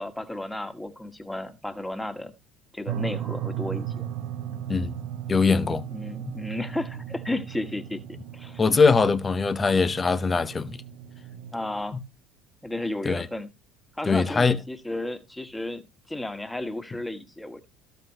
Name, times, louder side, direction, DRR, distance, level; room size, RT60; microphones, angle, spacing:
voice 1, 0.0-2.3 2.7-4.1 5.9-8.6 11.5-12.0 12.6-13.5 14.0-17.7, left 1 dB, 10° left, 1.8 m, -33 dB
sound 1, 2.9-12.1, right 9 dB, 60° right, 1.0 m, -36 dB
voice 2, 5.3-5.8 8.6-10.8 13.0-13.3 14.1-14.6, left 4 dB, 25° left, 0.9 m, -22 dB
14.5 x 6.7 x 2.9 m
figure-of-eight pair, 60°, 0 cm